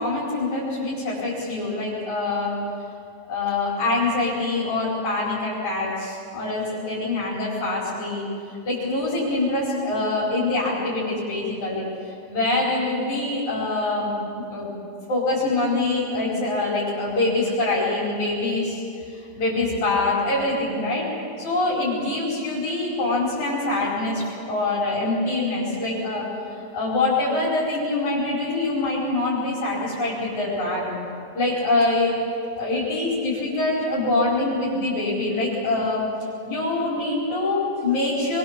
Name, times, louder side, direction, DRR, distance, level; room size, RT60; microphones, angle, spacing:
voice 1, 0.0-2.6 3.3-8.3 8.6-14.1 14.4-14.7 15.1-18.8 19.1-21.1 21.4-31.0 31.3-32.2 32.6-36.1 36.4-38.4, left 2 dB, 40° left, -8 dB, 6.2 m, -24 dB
25.5 x 23.0 x 7.6 m, 2.5 s
omnidirectional pair, 5.2 m